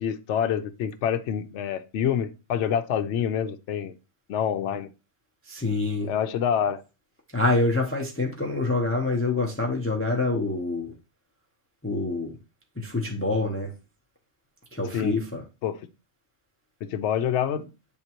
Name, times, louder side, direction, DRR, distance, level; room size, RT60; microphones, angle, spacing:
voice 1, 0.0-3.9 4.3-4.9 6.0-6.8 14.9-15.1 15.6-15.8 16.9-17.7, left 9 dB, 75° left, 0.9 m, -26 dB
voice 2, 5.5-6.1 7.3-10.9 11.8-12.3 12.8-13.7 14.7-15.4, left 2 dB, 15° left, 0.7 m, -26 dB
9.0 x 3.6 x 2.9 m
omnidirectional pair, 1.2 m